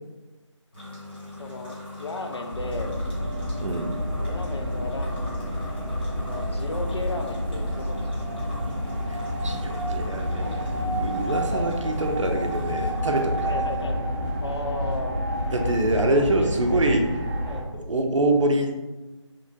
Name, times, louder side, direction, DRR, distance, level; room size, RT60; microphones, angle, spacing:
sound 1, 0.7-13.8, left 2 dB, 20° left, 0.7 m, -41 dB
voice 1, 1.2-3.0 4.2-5.6 6.2-8.4 11.5-11.7 13.4-14.0 14.4-15.2 16.0-16.9 17.4-17.7, left 2 dB, 55° left, 4 dB, 0.4 m, -35 dB
sound 2, 2.5-17.6, equal, 20° right, 0.5 m, -29 dB
voice 2, 9.1-10.7 11.0-13.6 15.5-17.1 17.7-18.7, right 1 dB, 70° right, 4 dB, 0.5 m, -25 dB
2.9 x 2.4 x 2.6 m, 1.1 s
figure-of-eight pair, 165°, 16 cm